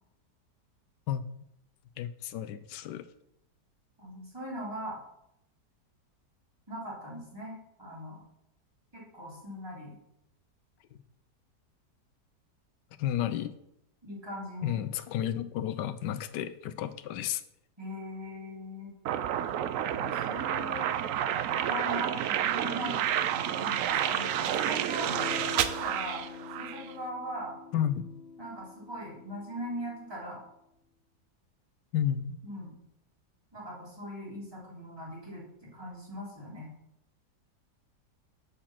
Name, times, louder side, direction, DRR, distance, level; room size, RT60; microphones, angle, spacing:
voice 1, 2.0-3.1 10.9-11.0 13.0-13.5 14.6-17.4 27.7-28.1 31.9-32.4, left 10 dB, 80° left, 13 dB, 1.3 m, -32 dB
voice 2, 4.0-5.0 6.7-8.2 8.9-9.9 14.0-14.8 17.8-18.9 19.9-20.9 21.6-25.1 25.5-26.2 26.6-27.6 28.4-30.4 32.4-32.7 33.5-36.7, equal, 15° right, -5 dB, 3.4 m, -40 dB
sound 1, 19.1-26.9, right 10 dB, 70° right, 0.8 m, -30 dB
Electric guitar / Strum, 25.1-30.2, left 5 dB, 55° left, 0.7 m, -45 dB
7.4 x 6.5 x 5.9 m, 0.78 s
omnidirectional pair, 1.8 m